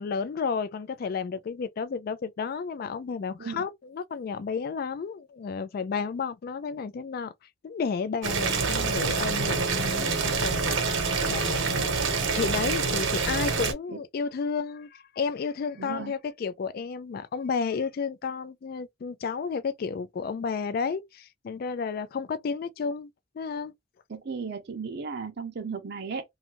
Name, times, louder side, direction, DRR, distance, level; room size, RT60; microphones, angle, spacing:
voice 1, 0.0-7.3 7.6-11.9 12.3-23.7, left 5 dB, 50° left, 0.3 m, -32 dB
Boiling, 8.2-13.7, right 4 dB, 80° right, 0.9 m, -26 dB
voice 2, 15.8-16.1 24.1-26.2, right 5 dB, 60° right, 0.5 m, -35 dB
2.6 x 2.4 x 2.9 m
head